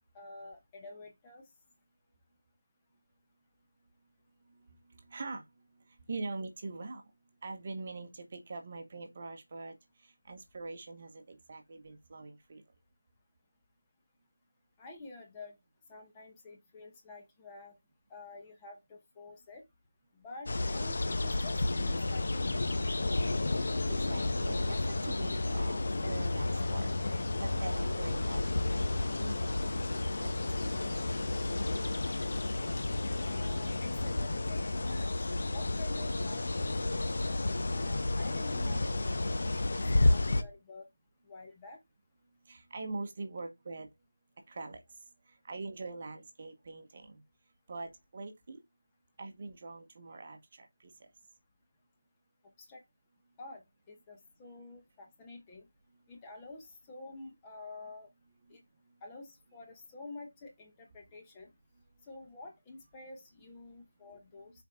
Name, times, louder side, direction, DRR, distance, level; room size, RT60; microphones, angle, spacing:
voice 1, 0.1-1.4 14.8-15.6 15.9-17.8 18.1-19.6 20.1-22.9 33.2-35.2 35.5-37.4 37.7-40.9 41.2-41.8 52.6-52.8 53.4-55.7 56.1-58.1 58.5-58.6 59.0-61.5 62.0-64.5, left 3 dB, 10° left, 0.9 m, -49 dB
voice 2, 4.9-5.4 6.1-7.0 7.4-9.8 10.0-12.6 23.9-29.6 30.2-31.0 42.5-43.9 44.5-44.8 45.4-47.2 47.7-48.6 49.2-51.1, right 3 dB, 30° right, 1.0 m, -43 dB
sound 1, 20.5-40.4, left 2 dB, 45° left, 0.9 m, -31 dB
6.4 x 4.6 x 3.6 m
figure-of-eight pair, 175°, 0 cm